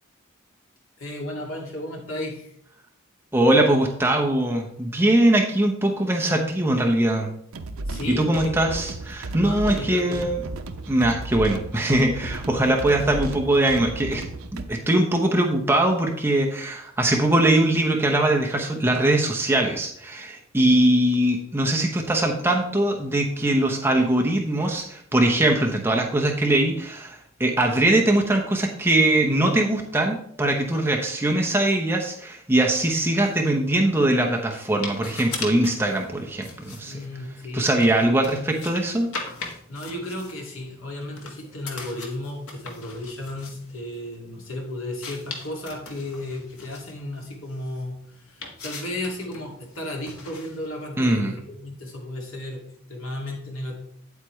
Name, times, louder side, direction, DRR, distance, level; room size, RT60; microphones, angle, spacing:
voice 1, 1.0-2.5 7.9-8.6 9.4-10.3 36.7-38.3 39.7-53.8, left 1 dB, 70° left, -1 dB, 2.4 m, -34 dB
voice 2, 3.3-7.3 8.1-10.4 10.9-14.2 14.5-36.9 37.5-39.1 51.0-51.4, right 1 dB, 10° right, 1 dB, 0.8 m, -21 dB
sound 1, 7.5-14.6, right 2 dB, 80° right, 0.7 m, -34 dB
sound 2, 32.8-50.8, left 4 dB, 90° left, 1.6 m, -41 dB
8.9 x 8.2 x 3.2 m, 0.68 s
head